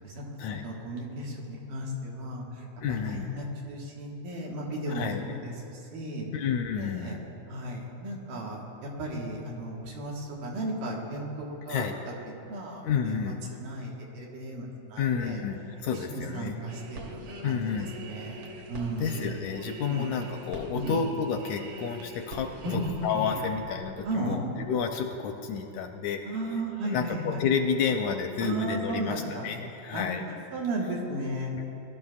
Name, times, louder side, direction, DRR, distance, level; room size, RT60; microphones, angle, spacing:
voice 1, 0.6-6.3 6.8-7.2 7.5-15.4 15.9-17.6 18.0-18.4 18.7-19.3 19.9-20.1 20.7-21.0 22.6-22.8 23.2-23.3 24.0-24.4 26.2-27.4 28.4-29.5 29.9-30.1 30.5-31.6, right 1 dB, 90° right, -2 dB, 3.1 m, -35 dB
voice 2, 2.8-3.4 5.0-5.3 6.3-7.2 11.7-12.0 12.8-13.4 15.0-16.5 17.4-17.9 19.0-26.2 26.9-30.2 31.6-31.7, left 6 dB, 80° left, 5 dB, 1.7 m, -30 dB
sound 1, 16.7-24.1 24.5-24.7, right 1 dB, 60° right, 1.8 m, -43 dB
20.0 x 12.0 x 2.4 m, 2.9 s
omnidirectional pair, 3.7 m